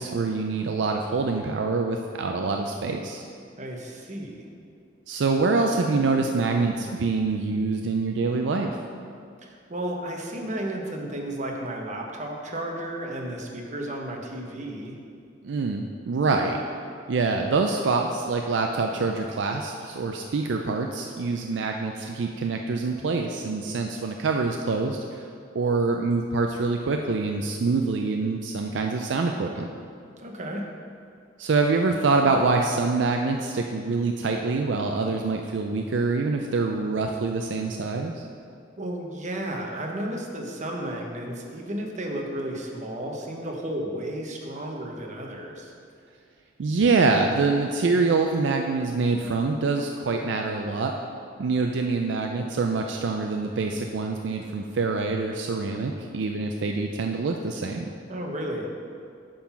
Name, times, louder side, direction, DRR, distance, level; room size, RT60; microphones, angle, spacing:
voice 1, 0.0-3.2 5.1-8.8 15.4-16.6 17.1-25.3 25.5-29.7 31.4-38.2 46.6-50.9 51.4-57.9, right 3 dB, 70° right, 3 dB, 0.4 m, -25 dB
voice 2, 3.6-4.5 9.4-14.9 30.2-30.6 38.8-45.7 58.1-58.7, right 1 dB, 40° right, 1 dB, 0.9 m, -33 dB
8.5 x 3.9 x 5.8 m, 2.3 s
head